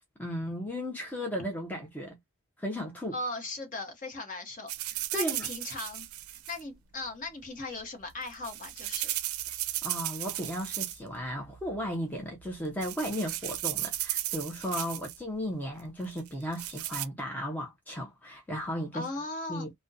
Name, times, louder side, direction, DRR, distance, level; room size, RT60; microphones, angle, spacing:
voice 1, 0.2-2.2 2.6-3.2 5.1-5.5 9.8-19.1 19.5-19.7, equal, 10° left, 0.5 m, -35 dB
voice 2, 3.1-9.1 18.9-19.7, left 2 dB, 35° left, 0.8 m, -38 dB
sound 1, 4.7-6.6 8.1-11.2 11.4-11.9 12.4-12.5 12.8-15.2 16.2-17.1, right 14 dB, 80° right, 0.4 m, -35 dB
2.4 x 2.1 x 2.5 m
head